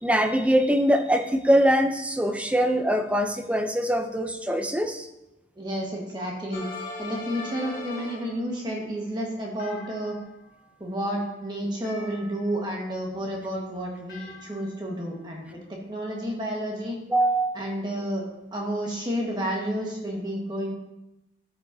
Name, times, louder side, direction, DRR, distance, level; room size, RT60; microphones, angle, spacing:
voice 1, 0.0-5.1 17.1-17.8, equal, 5° right, 7 dB, 0.4 m, -23 dB
voice 2, 5.6-6.7 7.0-10.2 10.8-17.0 17.5-18.2 18.5-20.7, equal, 25° right, -2 dB, 1.4 m, -31 dB
sound 1, 6.5-8.5 9.6-10.5 11.8-12.8 14.1-15.0, left 3 dB, 50° left, 1.4 m, -40 dB
12.5 x 5.2 x 2.7 m, 0.92 s
head